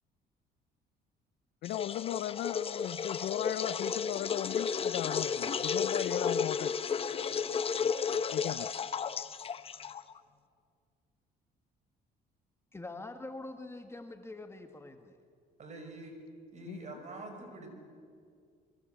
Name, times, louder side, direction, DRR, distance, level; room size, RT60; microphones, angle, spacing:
voice 1, 1.6-6.7 8.3-8.9 16.7-16.9, left 13 dB, 65° left, 0.6 m, -37 dB
sound 1, 1.6-10.2, left 6 dB, 35° left, 1.0 m, -33 dB
voice 2, 12.7-15.2, left 2 dB, 15° left, 1.7 m, -44 dB
voice 3, 15.6-16.2 16.5-17.7, right 2 dB, 45° right, 6.1 m, -45 dB
26.5 x 23.5 x 8.0 m
cardioid pair, 110°, 17 cm